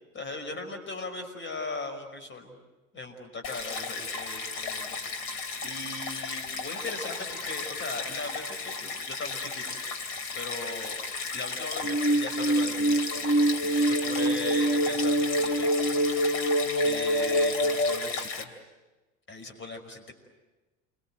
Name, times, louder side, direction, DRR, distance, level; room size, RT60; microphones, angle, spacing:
voice 1, 0.1-2.6 2.9-9.8 10.3-11.0 11.3-13.5 13.7-15.7 16.8-18.5 19.3-20.1, left 2 dB, 30° left, 5 dB, 5.8 m, -39 dB
Stream, 3.4-18.4, left 4 dB, 50° left, 3.1 m, -35 dB
sound 1, 11.8-18.0, right 1 dB, 85° left, 1.7 m, -25 dB
29.0 x 25.0 x 8.0 m, 1.1 s
figure-of-eight pair, 70°, 38 cm